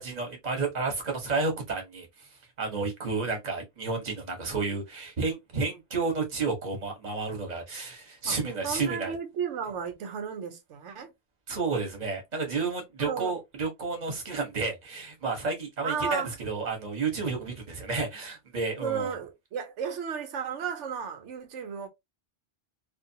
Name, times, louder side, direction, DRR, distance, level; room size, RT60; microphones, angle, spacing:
voice 1, 0.0-2.3 2.6-9.1 11.5-19.1, right 4 dB, 40° right, 1.1 m, -31 dB
voice 2, 8.6-11.1 13.0-13.3 15.8-16.3 18.8-21.9, right 6 dB, 85° right, 1.0 m, -34 dB
2.5 x 2.5 x 2.7 m
omnidirectional pair, 1.2 m